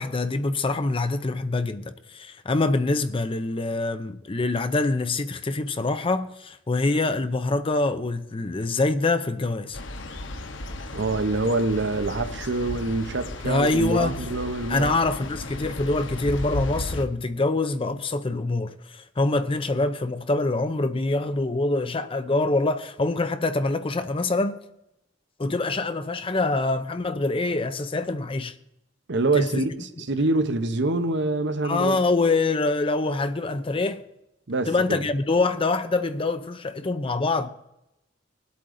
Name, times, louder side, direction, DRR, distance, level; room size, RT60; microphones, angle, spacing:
voice 1, 0.0-9.8 13.4-14.2 14.7-24.6 25.4-28.5 29.3-29.6 31.6-34.0 34.7-37.5, left 2 dB, 30° left, 0.6 m, -25 dB
sound 1, 9.7-17.0, left 1 dB, 85° left, 1.1 m, -35 dB
voice 2, 10.9-14.9 29.1-32.0 34.5-35.1, right 2 dB, 65° right, 1.0 m, -25 dB
20.0 x 8.4 x 3.8 m
head